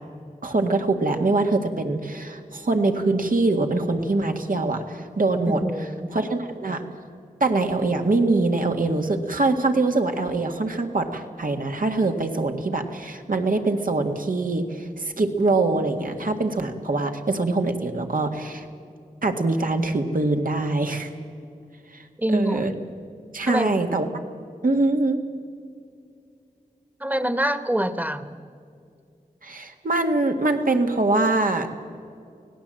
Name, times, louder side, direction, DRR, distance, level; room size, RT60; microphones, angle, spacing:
voice 1, 0.4-5.6 6.1-6.8 7.4-18.7 19.2-21.1 21.9-22.7 23.3-24.1 24.6-25.2 29.4-31.7, right 2 dB, 70° right, 4 dB, 1.9 m, -23 dB
voice 2, 5.5-6.1 22.2-22.6 23.5-23.8 27.0-28.4, equal, 10° right, 11 dB, 1.3 m, -25 dB
24.0 x 18.0 x 7.8 m, 2.4 s
cardioid pair, 45°, 15 cm